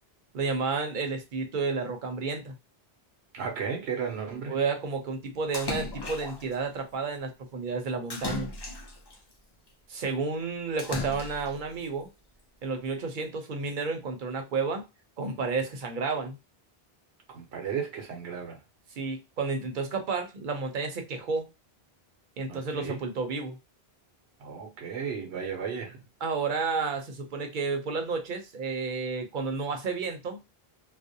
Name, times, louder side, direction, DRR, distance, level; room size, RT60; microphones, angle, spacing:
voice 1, 0.3-2.5 4.5-8.5 9.9-12.1 12.6-14.8 15.2-16.4 19.0-21.5 22.4-23.6 26.2-30.4, right 4 dB, 55° right, 0.7 m, -31 dB
voice 2, 3.3-4.6 17.3-18.6 22.5-23.0 24.4-26.0, right 6 dB, 85° right, 0.9 m, -34 dB
Splash splatter, 5.5-6.5 8.1-9.2 10.8-11.6, left 2 dB, 35° left, 0.4 m, -35 dB
2.4 x 2.0 x 2.6 m
omnidirectional pair, 1.0 m